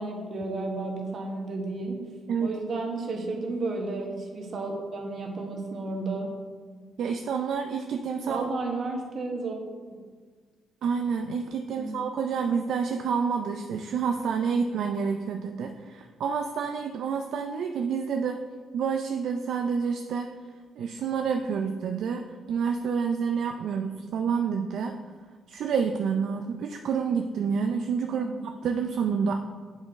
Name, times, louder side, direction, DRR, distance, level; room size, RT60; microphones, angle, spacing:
voice 1, 0.0-2.1 2.4-6.3 8.1-9.6 9.9-10.0 11.8-12.0 28.1-28.4, right 3 dB, 55° right, 1 dB, 1.3 m, -32 dB
voice 2, 7.0-8.4 10.8-18.4 18.7-20.3 20.8-22.2 22.5-24.9 25.5-29.4, right 6 dB, 70° right, 5 dB, 0.4 m, -28 dB
7.5 x 5.1 x 3.5 m, 1.5 s
cardioid pair, 90°, 0 cm